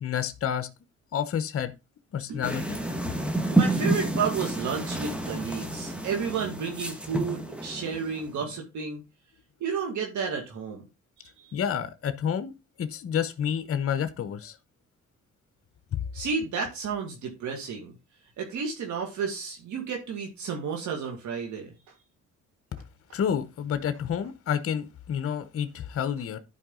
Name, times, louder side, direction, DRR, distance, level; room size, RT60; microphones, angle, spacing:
voice 1, 0.0-0.7 1.1-1.7 2.1-2.8 11.5-12.5 12.8-14.6 15.9-16.0 23.1-26.4, left 8 dB, 50° left, 0.9 m, -29 dB
sound 1, 2.4-8.5, right 2 dB, 5° right, 1.5 m, -29 dB
voice 2, 3.5-9.0 9.6-10.9 11.2-11.6 16.1-17.9 18.4-21.7 23.1-23.2, right 6 dB, 75° right, 2.0 m, -32 dB
11.0 x 4.8 x 3.7 m
cardioid pair, 90°, 30 cm